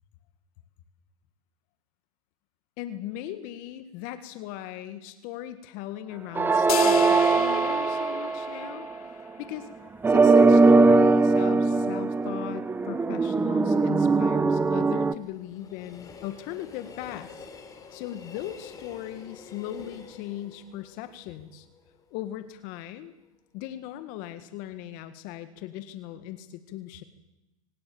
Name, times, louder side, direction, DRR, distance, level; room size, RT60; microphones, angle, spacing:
voice 1, 2.8-8.9 9.4-9.7 10.1-17.5 17.9-21.7 22.1-23.1 23.5-27.0, left 12 dB, 50° left, 10 dB, 1.8 m, -38 dB
sound 1, 6.4-8.9 10.0-15.1, right 3 dB, 10° right, 0.8 m, -21 dB
sound 2, 6.7-9.3, left 13 dB, 75° left, 1.6 m, -33 dB
Train, 13.5-22.6 22.9-23.0, left 5 dB, 20° left, 3.6 m, -48 dB
25.0 x 19.0 x 7.1 m, 0.98 s
hypercardioid pair, 125°, 19 cm